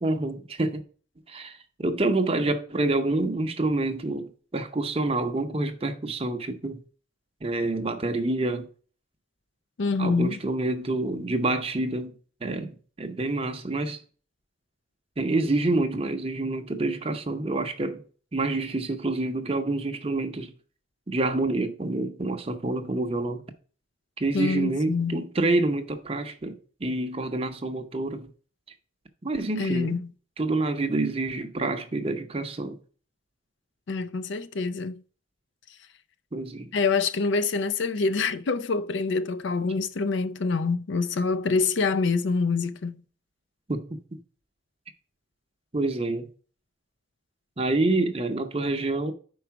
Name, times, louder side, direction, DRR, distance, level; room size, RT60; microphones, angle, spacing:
voice 1, 0.0-0.8 1.3-6.8 7.4-8.7 10.0-12.1 12.4-14.0 15.2-18.0 18.3-20.5 21.1-23.4 24.2-28.3 29.2-30.0 30.4-32.8 36.3-36.7 43.7-44.2 45.7-46.3 47.6-49.1, right 2 dB, 30° right, 0.7 m, -27 dB
voice 2, 9.8-10.4 24.3-25.2 29.6-30.1 33.9-35.0 36.7-43.0, left 4 dB, 65° left, 0.4 m, -26 dB
5.0 x 4.7 x 5.7 m
head